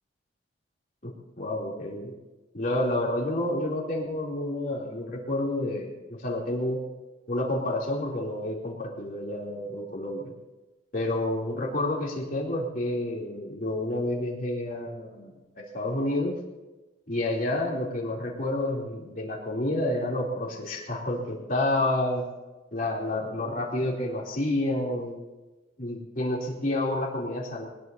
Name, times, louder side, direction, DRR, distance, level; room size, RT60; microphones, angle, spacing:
voice 1, 1.0-2.1 2.5-6.8 7.3-10.3 10.9-15.3 15.5-16.4 17.1-22.3 22.7-25.2 25.8-27.6, left 1 dB, 45° left, -2 dB, 3.2 m, -29 dB
21.5 x 20.0 x 2.8 m, 1.1 s
head